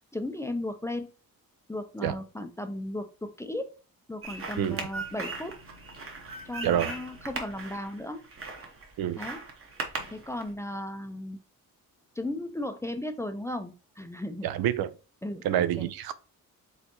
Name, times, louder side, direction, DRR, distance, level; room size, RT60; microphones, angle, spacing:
voice 1, 0.1-1.1 1.7-3.7 4.1-5.6 6.4-8.3 9.2-9.4 10.1-11.4 12.2-14.5 15.2-15.9, left 1 dB, 10° left, 0.3 m, -35 dB
sound 1, 4.2-10.5, right 3 dB, 40° right, 1.0 m, -38 dB
voice 2, 14.4-14.9 15.4-16.1, right 11 dB, 90° right, 0.6 m, -27 dB
4.2 x 3.9 x 2.9 m
wide cardioid pair, 160°, 35 cm